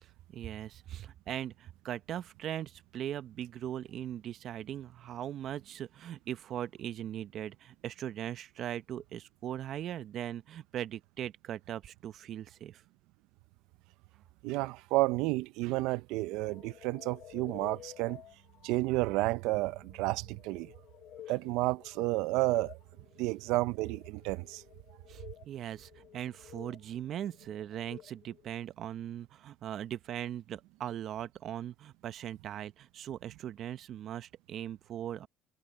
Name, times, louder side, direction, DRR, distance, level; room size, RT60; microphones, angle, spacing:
voice 1, 0.0-12.8 25.1-35.3, right 11 dB, 60° right, 0.9 m, -40 dB
voice 2, 14.4-18.2 18.6-20.7 21.3-22.8 23.2-24.6, right 20 dB, 80° right, 0.6 m, -31 dB
sound 1, 16.3-28.5, left 12 dB, 65° left, 3.1 m, -53 dB
supercardioid pair, 90°, 0 cm